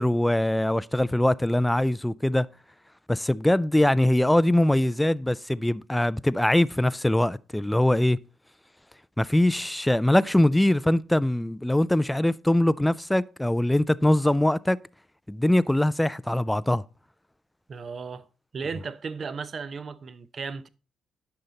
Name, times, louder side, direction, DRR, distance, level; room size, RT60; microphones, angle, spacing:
voice 1, 0.0-2.5 3.1-8.2 9.2-14.8 15.3-16.8, left 1 dB, 5° left, 0.3 m, -22 dB
voice 2, 17.7-18.3 18.5-20.7, right 5 dB, 45° right, 0.7 m, -35 dB
10.5 x 5.7 x 4.0 m
cardioid pair, 90°, 0 cm